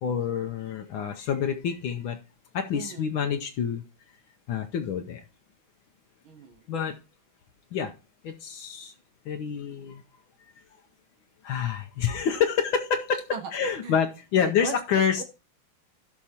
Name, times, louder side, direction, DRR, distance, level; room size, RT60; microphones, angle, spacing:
voice 1, 0.0-2.2 2.5-3.8 4.5-5.2 6.7-7.0 7.7-7.9 8.2-8.9 9.2-10.0 11.4-15.2, left 7 dB, 75° left, 5 dB, 1.5 m, -27 dB
voice 2, 2.7-3.1 6.2-6.6 13.3-13.4 13.8-14.0 14.4-15.2, right 5 dB, 75° right, 5 dB, 1.8 m, -39 dB
16.0 x 5.9 x 2.8 m, 0.31 s
omnidirectional pair, 2.3 m